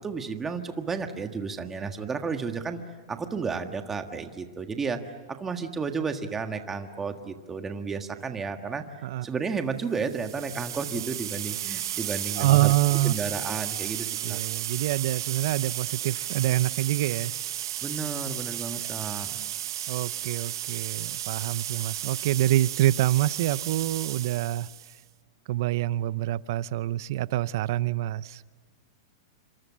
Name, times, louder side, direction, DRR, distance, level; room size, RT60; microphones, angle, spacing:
voice 1, 0.0-2.8 3.1-8.8 9.2-12.7 13.0-14.4 17.8-19.4, right 5 dB, 10° right, 1.6 m, -32 dB
sound 1, 10.0-25.0, right 12 dB, 70° right, 1.1 m, -34 dB
voice 2, 12.4-13.1 14.2-17.3 19.9-24.7 25.5-28.4, right 15 dB, 50° right, 0.7 m, -26 dB
27.5 x 26.0 x 7.5 m
supercardioid pair, 160°, 2 cm